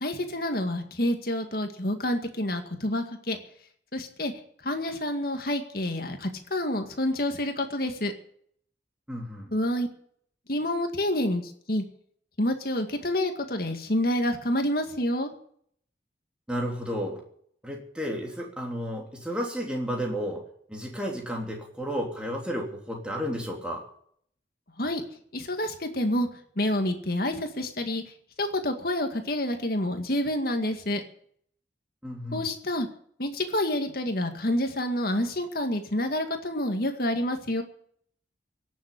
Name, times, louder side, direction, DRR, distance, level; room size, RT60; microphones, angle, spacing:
voice 1, 0.0-3.4 3.9-4.3 4.6-8.1 9.5-9.9 10.5-11.4 11.7-11.8 12.4-15.3 24.8-25.0 25.3-26.3 26.6-28.0 28.4-31.0 32.3-32.9 33.2-37.6, left 1 dB, 55° left, 5 dB, 2.1 m, -28 dB
voice 2, 9.1-9.5 16.5-17.2 17.6-20.4 20.7-23.8 32.0-32.4, equal, 5° right, -1 dB, 3.3 m, -32 dB
17.0 x 7.4 x 10.0 m, 0.63 s
head